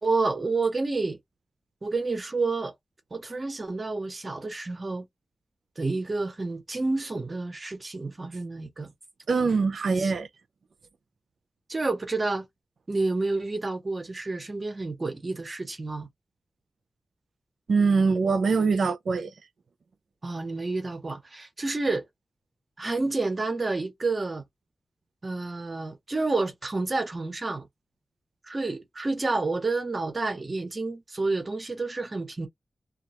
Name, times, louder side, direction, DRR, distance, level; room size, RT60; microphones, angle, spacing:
voice 1, 0.0-1.2 1.8-2.7 3.1-5.1 5.8-8.9 9.8-10.1 11.7-12.5 12.9-16.1 20.2-22.0 22.8-24.4 25.2-27.7 28.4-32.5, right 3 dB, 40° right, 0.8 m, -29 dB
voice 2, 9.3-10.3 17.7-19.3, right 4 dB, 80° right, 0.4 m, -23 dB
2.3 x 2.3 x 2.8 m
wide cardioid pair, 95°, 0 cm